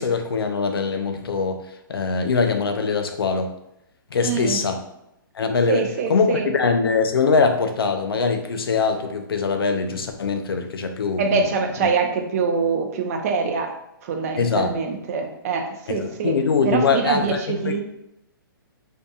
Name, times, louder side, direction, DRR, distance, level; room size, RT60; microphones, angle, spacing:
voice 1, 0.0-1.6 1.9-3.5 4.1-4.8 5.4-11.4 11.8-11.9 14.4-14.7 15.9-17.8, left 4 dB, 85° left, 6 dB, 0.4 m, -22 dB
voice 2, 4.2-4.6 5.7-6.5 11.2-13.7 14.0-16.3 16.6-17.8, right 5 dB, 40° right, 4 dB, 0.4 m, -24 dB
2.6 x 2.5 x 2.2 m, 0.83 s
hypercardioid pair, 140°, 12 cm